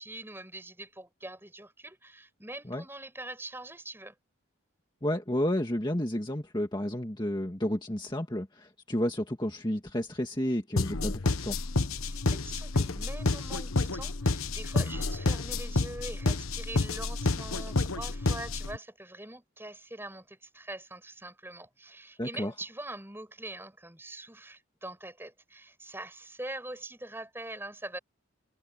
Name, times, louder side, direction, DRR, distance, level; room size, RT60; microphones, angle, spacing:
voice 1, 0.0-4.1 12.0-28.0, right 1 dB, 10° right, 6.4 m, -43 dB
voice 2, 5.0-11.6 22.2-22.5, equal, 20° left, 1.9 m, -31 dB
sound 1, 10.8-18.8, left 3 dB, 85° left, 1.2 m, -29 dB
head